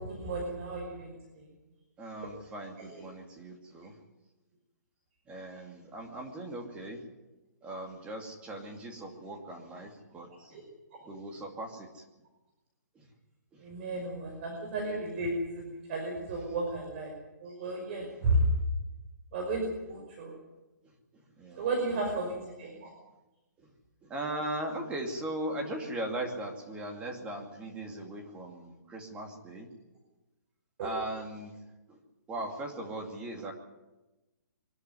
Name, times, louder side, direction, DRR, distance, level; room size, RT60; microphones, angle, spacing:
voice 1, 0.0-1.5 2.9-3.0 10.5-10.6 13.6-17.1 17.4-18.5 19.3-20.3 21.6-22.9 30.8-30.9, right 2 dB, 35° right, 0 dB, 5.4 m, -33 dB
voice 2, 2.0-3.9 5.3-7.0 7.6-10.6 11.1-12.0 12.9-13.0 13.5-13.6 18.1-18.2 21.4-22.3 23.6-23.7 24.0-29.7 30.8-31.6 31.9-32.0 32.3-33.5, right 1 dB, 10° right, 2 dB, 2.6 m, -39 dB
24.0 x 13.5 x 9.7 m, 1.0 s
hypercardioid pair, 165°, 10 cm